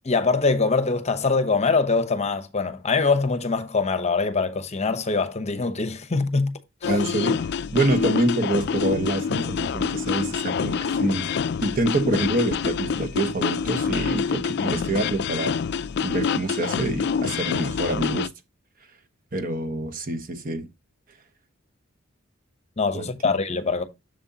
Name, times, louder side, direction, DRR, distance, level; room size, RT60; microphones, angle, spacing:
voice 1, 0.1-6.5 6.8-6.9 14.6-14.7 22.8-23.8, left 4 dB, 35° left, 0.8 m, -23 dB
sound 1, 6.8-18.3, left 6 dB, 55° left, 0.4 m, -26 dB
voice 2, 6.9-11.3 11.6-15.6 16.0-18.3 19.3-20.7 22.9-23.1, right 2 dB, 45° right, 1.1 m, -26 dB
7.6 x 6.7 x 2.8 m
head